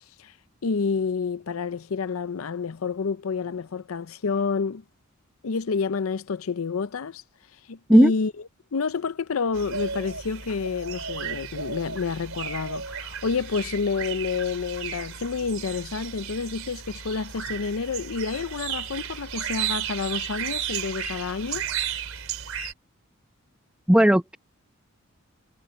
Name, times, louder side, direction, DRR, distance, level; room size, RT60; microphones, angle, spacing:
voice 1, 0.6-4.8 5.4-7.2 7.7-8.3 8.7-21.7, left 5 dB, 85° left, 0.6 m, -29 dB
sound 1, 9.5-22.7, right 8 dB, 80° right, 3.6 m, -34 dB
voice 2, 23.9-24.4, equal, 5° right, 0.8 m, -15 dB
head